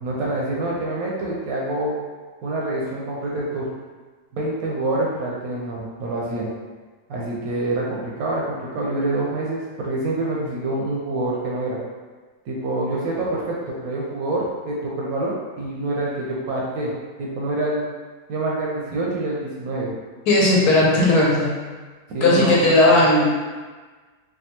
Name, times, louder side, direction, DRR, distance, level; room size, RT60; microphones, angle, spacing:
voice 1, 0.0-1.9 2.4-3.7 4.3-6.5 7.1-11.8 12.5-16.9 17.2-17.8 18.3-19.9 22.1-22.9, right 2 dB, 70° right, -4 dB, 0.9 m, -26 dB
voice 2, 20.3-21.5 22.2-23.2, left 2 dB, 75° left, -5 dB, 1.3 m, -16 dB
3.4 x 2.3 x 2.8 m, 1.4 s
omnidirectional pair, 1.8 m